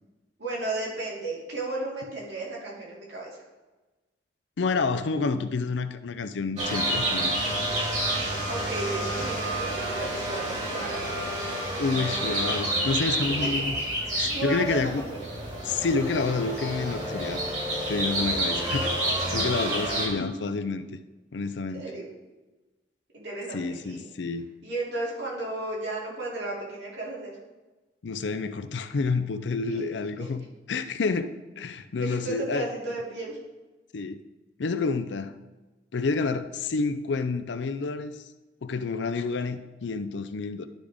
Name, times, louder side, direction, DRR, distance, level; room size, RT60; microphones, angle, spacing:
voice 1, 0.4-3.4 8.5-11.3 13.3-13.7 14.2-15.5 21.7-22.0 23.1-24.0 24.6-27.3 29.7-29.8 30.2-30.3 32.0-33.4, right 2 dB, 70° right, -5 dB, 2.5 m, -34 dB
voice 2, 4.6-7.4 11.8-13.8 14.1-15.0 15.7-17.4 17.9-19.0 19.3-20.8 21.3-21.9 23.5-24.5 28.0-32.7 33.9-34.2 34.6-35.3 35.9-38.2 38.6-40.7, left 4 dB, 75° left, 10 dB, 0.5 m, -29 dB
sound 1, 6.6-20.1, right 1 dB, 40° right, 2.5 m, -29 dB
11.5 x 5.1 x 3.5 m, 1.2 s
head